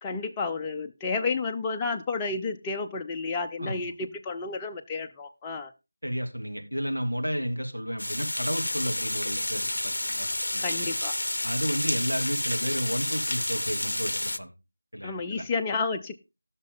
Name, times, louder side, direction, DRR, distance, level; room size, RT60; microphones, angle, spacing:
voice 1, 0.0-5.7 10.6-11.2 15.0-16.2, left 4 dB, 10° left, 2 dB, 0.5 m, -31 dB
voice 2, 6.0-10.9 11.4-14.5 14.9-15.4, equal, 90° right, 3 dB, 2.8 m, -32 dB
Water, 8.0-14.4, left 1 dB, 60° left, 0.6 m, -30 dB
16.5 x 6.6 x 3.8 m, 0.27 s
figure-of-eight pair, 170°, 0 cm